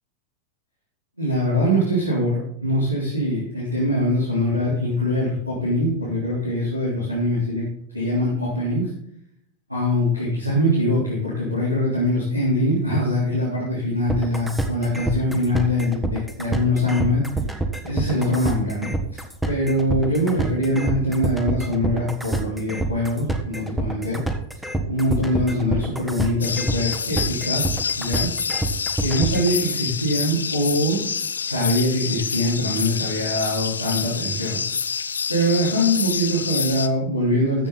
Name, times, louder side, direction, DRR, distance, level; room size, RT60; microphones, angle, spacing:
voice 1, 1.2-7.7 7.9-8.9 9.7-17.2 17.8-24.2 24.9-28.3 29.0-31.0 31.4-34.6 35.3-37.7, left 1 dB, 90° right, -7 dB, 3.8 m, -23 dB
sound 1, 14.1-29.5, right 2 dB, 5° right, 1.3 m, -26 dB
sound 2, 26.4-36.9, left 6 dB, 70° left, 0.6 m, -27 dB
14.5 x 7.0 x 4.1 m, 0.74 s
figure-of-eight pair, 90°, 0 cm